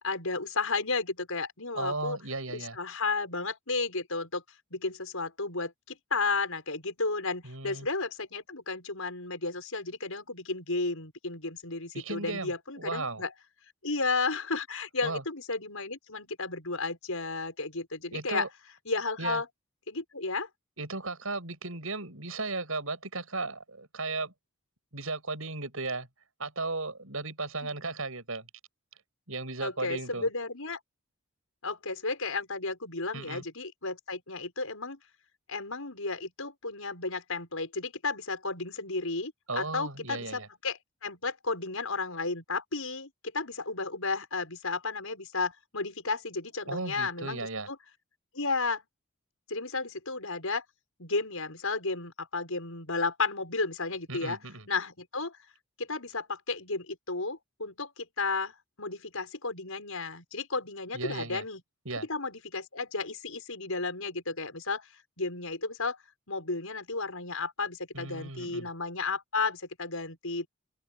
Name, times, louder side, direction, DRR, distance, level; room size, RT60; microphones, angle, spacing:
voice 1, 0.0-2.2 2.5-4.4 4.7-13.3 13.8-18.5 18.9-19.5 19.9-20.5 27.6-27.7 29.6-30.8 31.6-35.0 35.5-47.8 48.3-48.8 49.5-50.6 51.0-54.4 54.7-55.4 55.8-61.6 61.9-64.9 65.2-66.0 66.3-70.5, left 3 dB, 75° left, 6.0 m, -33 dB
voice 2, 1.7-2.8 7.4-7.9 11.9-13.2 15.0-15.2 18.1-18.5 19.2-19.4 20.8-24.3 24.9-26.1 26.4-28.5 29.3-30.3 33.1-33.4 39.5-40.5 46.7-47.7 54.1-54.7 60.9-61.4 61.9-62.1 67.9-68.7, right 3 dB, 70° right, 7.4 m, -35 dB
open air
head